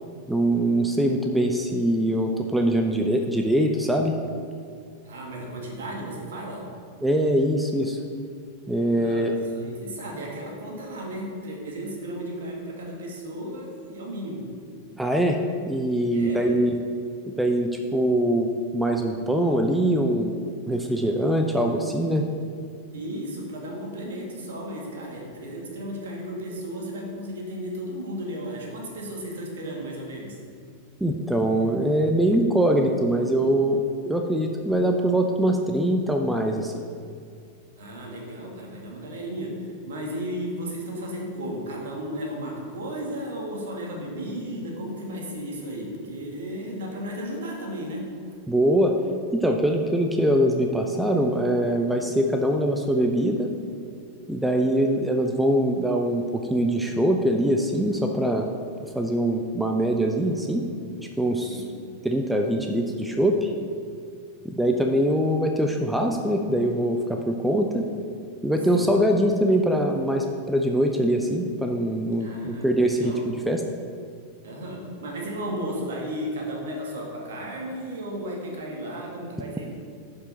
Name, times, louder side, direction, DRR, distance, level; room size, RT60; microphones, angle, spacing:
voice 1, 0.3-4.2 7.0-8.0 8.7-9.3 15.0-15.4 15.7-16.8 17.2-20.3 20.7-22.3 31.0-36.7 48.5-48.9 49.3-53.5 54.3-58.5 59.0-60.7 61.0-61.6 62.0-63.5 64.4-67.9 68.4-73.6, right 1 dB, 5° right, 3 dB, 0.6 m, -23 dB
voice 2, 5.0-6.7 8.9-14.5 16.1-16.6 22.9-30.4 37.8-48.1 61.5-61.8 68.7-68.9 72.2-73.2 74.4-79.7, equal, 60° right, -1 dB, 1.9 m, -34 dB
11.0 x 5.5 x 4.1 m, 2.3 s
figure-of-eight pair, 90°, 0 cm